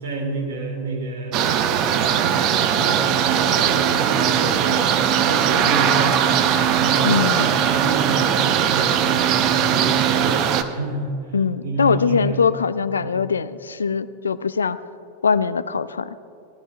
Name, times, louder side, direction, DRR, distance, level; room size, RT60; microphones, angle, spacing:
voice 1, 0.0-1.4 1.8-4.9 5.2-6.2 6.7-11.2 11.6-12.5 13.0-13.2, right 2 dB, 60° right, 0 dB, 2.9 m, -29 dB
sound 1, 1.3-10.6, right 9 dB, 40° right, 0.7 m, -19 dB
voice 2, 7.0-7.5 11.3-14.8 15.2-16.2, left 5 dB, 70° left, 15 dB, 0.4 m, -22 dB
18.5 x 13.0 x 2.5 m, 2.6 s
figure-of-eight pair, 90°, 0 cm